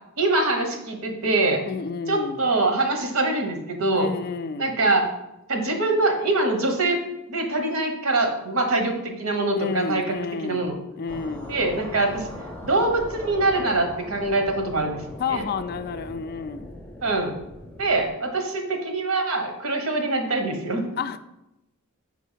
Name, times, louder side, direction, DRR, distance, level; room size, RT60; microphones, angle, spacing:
voice 1, 0.2-1.6 2.1-4.1 4.6-5.1 5.5-7.0 7.3-10.1 10.4-10.8 11.5-12.3 12.6-15.0 15.3-15.4 17.0-17.4 17.8-20.9, right 2 dB, 80° right, 4 dB, 1.1 m, -24 dB
voice 2, 1.7-2.4 3.9-4.7 9.6-10.7 11.0-11.5 15.2-16.7 21.0-21.2, left 5 dB, 45° left, 11 dB, 0.3 m, -30 dB
sound 1, 11.1-18.1, left 1 dB, 5° left, 0.6 m, -40 dB
4.6 x 4.0 x 5.6 m, 0.90 s
head